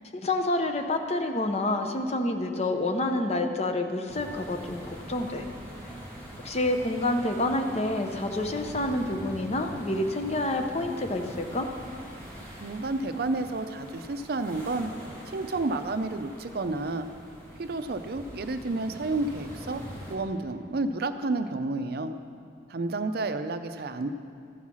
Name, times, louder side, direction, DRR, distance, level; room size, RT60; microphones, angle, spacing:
voice 1, 0.1-5.4 6.4-11.7, left 2 dB, 35° left, 5 dB, 0.7 m, -28 dB
sound 1, 4.1-20.1, equal, 10° left, 2.4 m, -44 dB
voice 2, 12.6-14.9 15.3-17.1 17.6-19.8 20.1-22.1 22.7-24.1, right 2 dB, 55° right, 9 dB, 0.5 m, -30 dB
14.0 x 5.6 x 6.2 m, 2.4 s
head